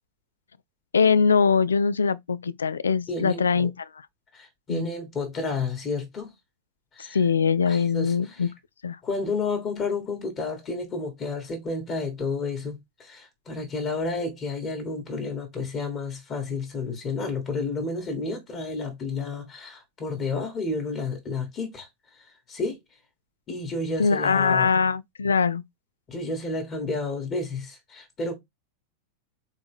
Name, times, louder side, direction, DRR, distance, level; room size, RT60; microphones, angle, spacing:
voice 1, 0.9-3.9 4.7-4.9 7.1-8.5 8.8-9.0 24.0-25.6, left 5 dB, 70° left, 0.3 m, -22 dB
voice 2, 3.1-3.7 4.3-6.3 6.9-7.2 7.7-8.4 9.0-21.9 22.5-22.8 23.5-24.7 26.1-28.3, left 3 dB, 30° left, 1.6 m, -31 dB
4.0 x 3.4 x 3.5 m
figure-of-eight pair, 90°, 0 cm